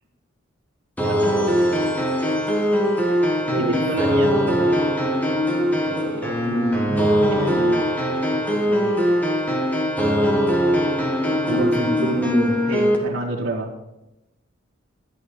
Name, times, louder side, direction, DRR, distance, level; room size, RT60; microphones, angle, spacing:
sound 1, 1.0-13.0, equal, 10° left, 1.4 m, -21 dB
voice 1, 1.0-1.6 3.5-4.8 5.8-6.4 7.3-9.0 11.4-11.6 12.7-13.7, right 2 dB, 85° right, -6 dB, 2.0 m, -30 dB
voice 2, 3.5-3.8 6.4-7.4 11.5-12.5, equal, 55° right, -2 dB, 1.9 m, -25 dB
13.5 x 9.3 x 5.0 m, 0.94 s
head